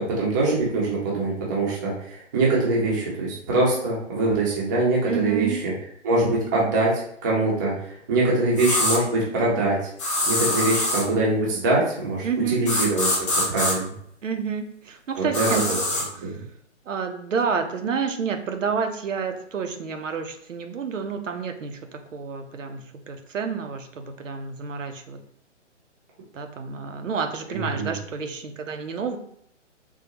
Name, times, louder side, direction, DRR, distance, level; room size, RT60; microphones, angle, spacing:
voice 1, 0.0-5.7 6.0-6.9 7.2-9.8 10.3-13.1 13.5-13.9 15.2-15.5 27.5-27.9, right 2 dB, 15° right, -5 dB, 0.5 m, -23 dB
voice 2, 5.1-5.6 12.2-12.7 14.2-16.4 16.9-25.2 26.3-29.2, right 5 dB, 85° right, 6 dB, 0.6 m, -29 dB
sound 1, 8.6-9.0 10.0-11.1 12.7-13.7 15.3-16.1, left 1 dB, 25° left, 0.6 m, -24 dB
3.7 x 2.1 x 2.8 m, 0.67 s
figure-of-eight pair, 140°, 37 cm